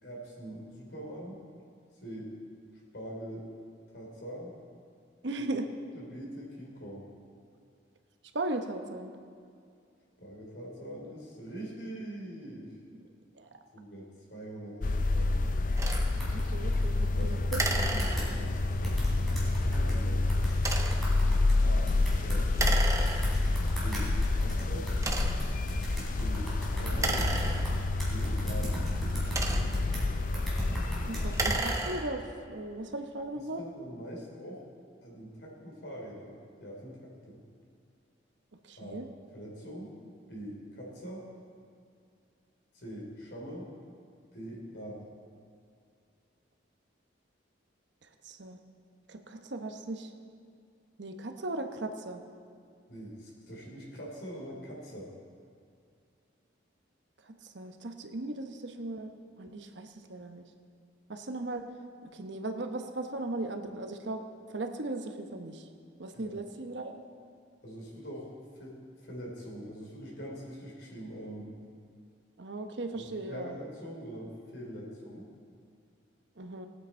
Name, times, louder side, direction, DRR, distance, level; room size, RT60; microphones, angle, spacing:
voice 1, 0.0-1.4 2.0-2.3 2.9-3.5 3.9-4.5 5.9-7.1 10.2-12.8 13.7-15.5 17.1-20.3 21.6-22.8 23.8-24.9 26.1-27.2 28.1-28.8 33.6-34.6 35.0-37.4 38.8-39.0 39.3-39.9 40.3-41.3 42.7-43.7 44.3-45.1 52.9-55.1 66.1-66.3 67.6-71.5 73.0-75.3, equal, 60° left, -3 dB, 3.4 m, -43 dB
voice 2, 5.2-5.7 8.3-9.1 13.3-13.5 16.3-17.9 31.0-33.6 38.6-39.1 48.0-48.6 49.1-50.1 51.0-52.2 57.2-59.1 59.4-60.5 61.1-61.7 62.0-64.2 64.5-65.7 66.0-67.0 72.4-73.5 76.4-76.7, right 2 dB, 70° right, 5 dB, 1.0 m, -37 dB
sound 1, 14.8-31.6, left 2 dB, 45° left, 0.5 m, -28 dB
sound 2, 15.8-16.9 17.2-17.3 17.5-17.7 18.0-18.3 18.8-20.0 20.3-22.7 23.0-30.0 30.3-31.8, equal, ahead, 3.5 m, -37 dB
sound 3, 15.8-16.1 17.5-18.6 20.5-21.1 22.5-23.6 24.2-24.3 25.0-25.6 26.9-28.1 29.0-29.9 31.2-32.3, right 2 dB, 15° right, 0.8 m, -33 dB
19.0 x 8.9 x 4.4 m, 2.3 s
head